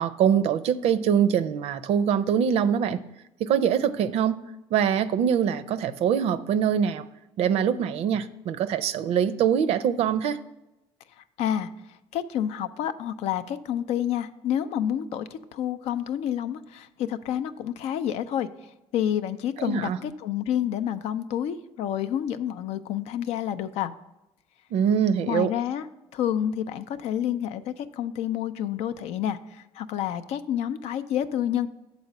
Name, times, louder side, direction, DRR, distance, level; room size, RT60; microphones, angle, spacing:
voice 1, 0.0-3.0 3.4-4.4 4.7-7.0 7.4-10.4 19.6-20.0 24.7-25.5, right 8 dB, 70° right, 13 dB, 0.5 m, -23 dB
voice 2, 11.2-11.7 12.1-18.5 18.9-23.9 25.3-25.9 26.1-31.7, left 10 dB, 75° left, 12 dB, 0.4 m, -29 dB
7.0 x 4.1 x 6.5 m, 0.93 s
cardioid pair, 90°, 11 cm